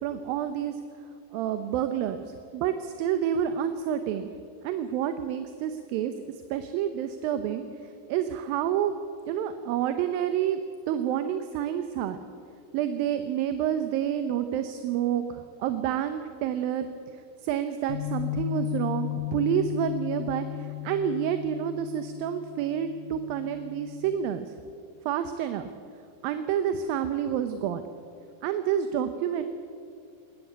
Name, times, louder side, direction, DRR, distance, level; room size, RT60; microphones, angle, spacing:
voice 1, 0.0-0.8 1.3-4.3 4.6-9.0 9.3-10.6 10.9-12.2 12.7-16.9 17.1-24.5 25.1-25.7 26.2-27.8 28.4-29.4, right 9 dB, 75° right, 9 dB, 2.5 m, -29 dB
Bass guitar, 17.9-24.1, left 19 dB, 55° left, 3.4 m, -35 dB
20.5 x 17.5 x 8.2 m, 2.4 s
omnidirectional pair, 4.5 m